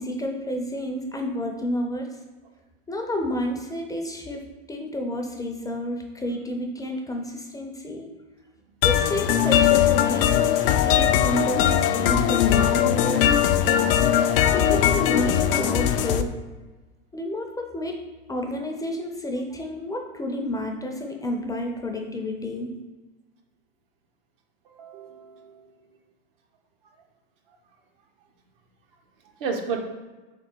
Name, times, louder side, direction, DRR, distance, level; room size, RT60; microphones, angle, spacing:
voice 1, 0.0-2.1 2.9-4.4 4.7-8.1 8.8-13.8 14.5-16.3 17.1-18.0 18.3-22.7, left 1 dB, 10° left, 2 dB, 0.5 m, -30 dB
sound 1, 8.8-16.2, left 10 dB, 65° left, 0.4 m, -20 dB
voice 2, 14.3-14.7 24.7-25.7 29.4-29.8, right 5 dB, 65° right, 3 dB, 0.9 m, -33 dB
3.5 x 3.4 x 4.4 m, 1.2 s
hypercardioid pair, 95°, 30 cm